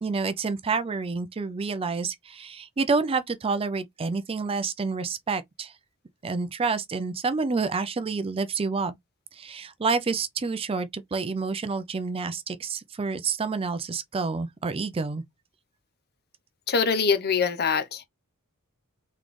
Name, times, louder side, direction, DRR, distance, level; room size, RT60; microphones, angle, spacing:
voice 1, 0.0-5.7 6.2-9.0 9.3-15.2, right 4 dB, 25° right, 0.4 m, -28 dB
voice 2, 16.7-18.0, left 5 dB, 45° left, 0.8 m, -24 dB
4.0 x 3.6 x 3.2 m
head